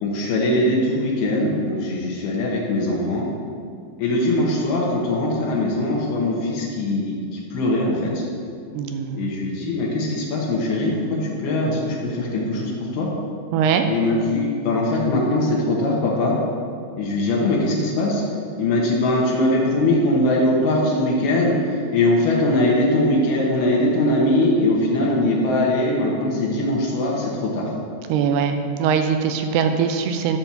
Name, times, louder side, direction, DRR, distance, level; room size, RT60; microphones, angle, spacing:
voice 1, 0.0-3.3 4.0-8.2 9.1-13.1 13.9-16.3 17.0-18.2 18.6-27.7, left 1 dB, 80° left, -4 dB, 3.2 m, -21 dB
voice 2, 8.7-9.2 13.5-13.9 28.1-30.4, right 7 dB, 80° right, 6 dB, 2.6 m, -21 dB
12.0 x 4.4 x 6.9 m, 2.2 s
omnidirectional pair, 4.7 m